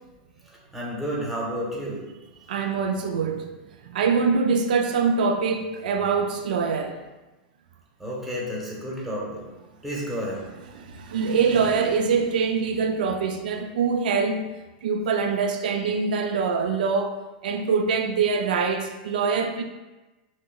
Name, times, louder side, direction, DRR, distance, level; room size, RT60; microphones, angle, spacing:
voice 1, 0.7-2.0 8.0-9.4 9.8-10.4, equal, ahead, -5 dB, 1.0 m, -30 dB
voice 2, 2.5-3.5 3.8-7.0 10.7-14.5 14.8-17.2 17.4-19.6, right 5 dB, 85° right, 4 dB, 0.3 m, -24 dB
5.6 x 2.0 x 2.3 m, 1.1 s
supercardioid pair, 135°, 5 cm